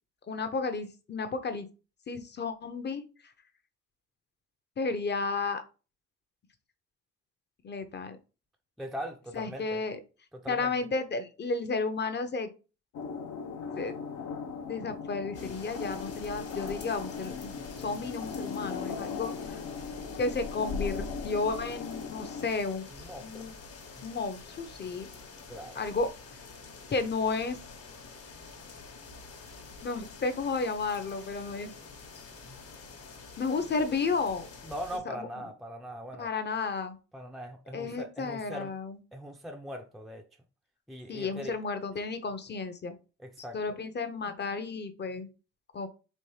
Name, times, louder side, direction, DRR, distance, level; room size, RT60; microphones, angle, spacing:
voice 1, 0.3-1.7 2.1-3.0 4.8-5.6 7.6-8.2 9.3-10.0 10.5-12.5 13.7-14.0 14.7-17.5 17.8-19.6 20.2-22.9 23.2-23.5 24.0-25.1 25.8-26.1 26.9-27.6 29.8-31.7 33.4-34.5 35.1-35.3 36.2-37.0 37.7-39.0 41.1-42.9 43.5-45.3 45.7-45.9, left 4 dB, 35° left, 0.8 m, -32 dB
voice 2, 8.8-9.8 10.3-10.7 22.9-23.5 25.5-25.8 34.6-36.3 37.1-38.7 39.1-40.3 40.9-41.6 43.2-43.6, equal, ahead, 0.5 m, -41 dB
sound 1, 12.9-22.5, left 6 dB, 70° left, 0.8 m, -39 dB
sound 2, 15.3-35.0, left 4 dB, 50° left, 1.2 m, -45 dB
4.3 x 3.0 x 3.3 m
cardioid pair, 90°, 30 cm